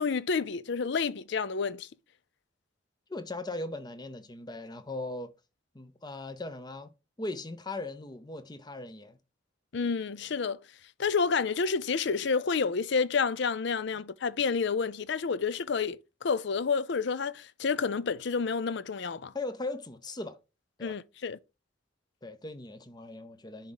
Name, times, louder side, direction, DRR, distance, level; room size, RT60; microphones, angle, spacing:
voice 1, 0.0-1.9 9.7-10.6 11.0-19.3 20.8-21.4, left 5 dB, 60° left, 0.5 m, -29 dB
voice 2, 3.1-5.3 5.7-9.2 19.3-20.4 20.8-21.0 22.2-23.7, left 2 dB, 20° left, 0.7 m, -39 dB
10.5 x 3.6 x 4.0 m
head